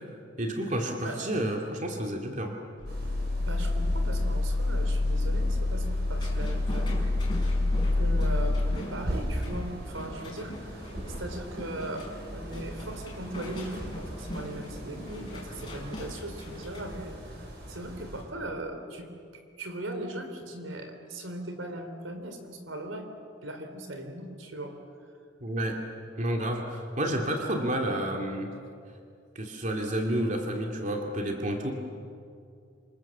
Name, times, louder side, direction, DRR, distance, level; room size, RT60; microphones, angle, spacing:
voice 1, 0.4-2.6 25.4-25.8 26.2-28.5 29.3-31.7, right 1 dB, 40° right, 1 dB, 2.6 m, -30 dB
sound 1, 2.8-8.8, left 2 dB, 75° left, 0.9 m, -27 dB
sound 2, 2.9-18.2, equal, 55° right, 6.7 m, -40 dB
voice 2, 3.4-7.0 7.9-17.4 17.7-23.1 23.4-24.8, right 1 dB, 80° right, 5 dB, 3.8 m, -39 dB
sound 3, 6.1-17.1, equal, 25° left, 6.0 m, -42 dB
27.5 x 27.0 x 7.4 m, 2.4 s
head